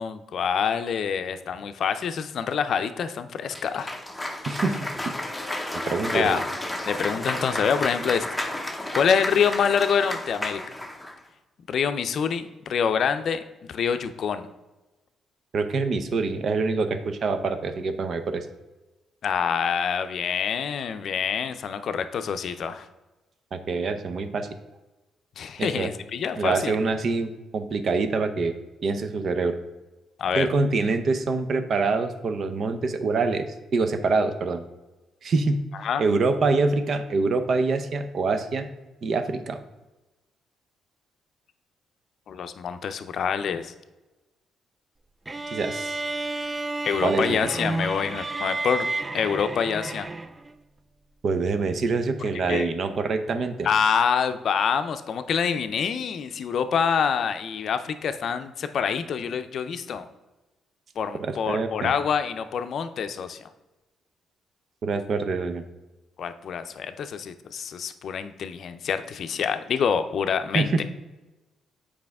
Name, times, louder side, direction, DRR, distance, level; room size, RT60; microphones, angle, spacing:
voice 1, 0.0-3.9 6.1-6.4 6.9-8.3 8.9-10.6 11.7-14.5 19.2-22.9 25.4-26.8 30.2-30.5 35.8-36.0 42.3-43.7 46.8-48.9 49.1-50.1 52.5-52.7 53.6-60.0 61.0-63.4 66.2-70.8, left 7 dB, 60° left, 10 dB, 0.5 m, -26 dB
Cheering / Applause, 3.5-11.2, left 1 dB, 5° left, 0.8 m, -32 dB
voice 2, 4.5-5.2 5.8-6.4 15.5-18.5 23.5-24.5 25.6-25.9 26.4-28.5 28.8-29.6 30.3-33.5 33.7-34.6 35.2-35.6 36.0-38.7 39.0-39.6 45.5-46.0 47.0-47.5 51.2-53.7 61.2-61.9 64.8-65.6 70.5-70.8, right 3 dB, 55° right, 9 dB, 0.7 m, -25 dB
sound 1, 45.3-50.5, right 2 dB, 20° right, 0.4 m, -31 dB
7.6 x 4.9 x 3.5 m, 1.1 s
cardioid pair, 90°, 0 cm